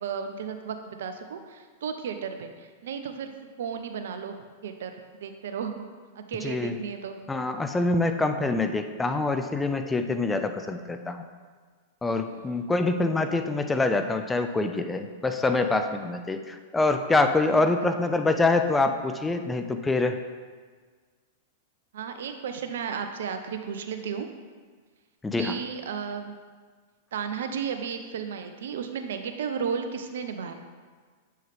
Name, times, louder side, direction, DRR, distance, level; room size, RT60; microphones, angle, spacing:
voice 1, 0.0-3.3 3.6-4.4 4.6-5.9 6.2-7.2 12.2-12.7 17.8-17.9 21.9-24.3 25.4-26.4 27.1-30.5, right 7 dB, 65° right, 7 dB, 0.5 m, -34 dB
voice 2, 6.4-6.7 7.3-11.3 12.0-20.2 25.2-25.5, left 2 dB, 10° left, 7 dB, 0.4 m, -25 dB
7.6 x 3.7 x 3.5 m, 1.5 s
figure-of-eight pair, 100°, 0 cm